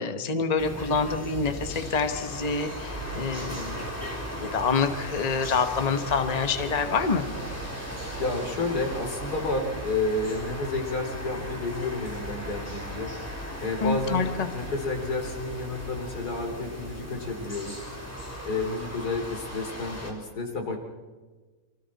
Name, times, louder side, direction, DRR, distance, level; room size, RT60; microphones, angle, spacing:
voice 1, 0.0-7.2 13.8-14.5, left 5 dB, 25° left, 8 dB, 1.3 m, -27 dB
sound 1, 0.6-20.1, equal, 10° left, 3.4 m, -37 dB
voice 2, 8.2-13.1 13.6-14.3 14.5-17.8 18.4-20.8, left 2 dB, 90° left, 3 dB, 3.5 m, -30 dB
28.5 x 25.5 x 4.2 m, 1.3 s
omnidirectional pair, 1.6 m